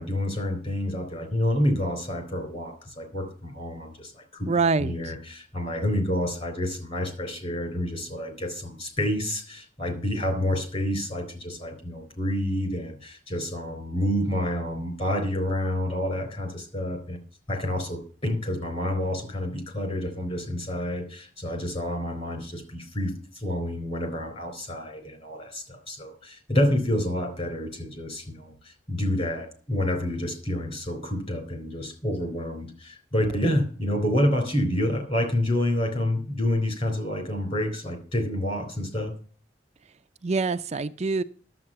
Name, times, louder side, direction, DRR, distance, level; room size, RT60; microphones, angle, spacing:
voice 1, 0.0-4.5 4.8-17.2 17.5-39.1, left 1 dB, 35° left, 7 dB, 3.8 m, -28 dB
voice 2, 4.5-5.1 40.2-41.2, right 4 dB, 35° right, 9 dB, 0.5 m, -25 dB
11.0 x 8.0 x 6.7 m, 0.42 s
head